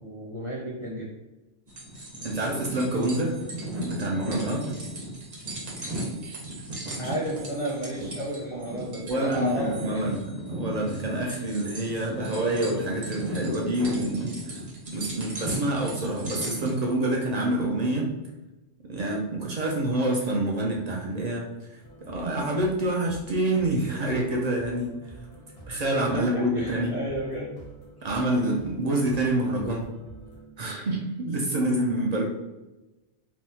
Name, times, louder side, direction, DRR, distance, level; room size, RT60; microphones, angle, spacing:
voice 1, 0.0-1.1 7.0-10.1 26.1-27.5, right 1 dB, 40° left, -6 dB, 0.4 m, -32 dB
sound 1, 1.7-16.7, right 1 dB, 40° right, 0.9 m, -36 dB
voice 2, 2.2-3.3 3.7-4.6 7.0-7.1 9.0-14.6 14.9-18.1 18.8-24.9 25.7-27.0 28.0-29.9 30.6-32.2, right 1 dB, 60° right, -1 dB, 0.4 m, -27 dB
sound 2, 21.8-30.4, right 2 dB, 85° left, 1.0 m, -48 dB
3.4 x 2.0 x 2.7 m, 1.0 s
omnidirectional pair, 1.2 m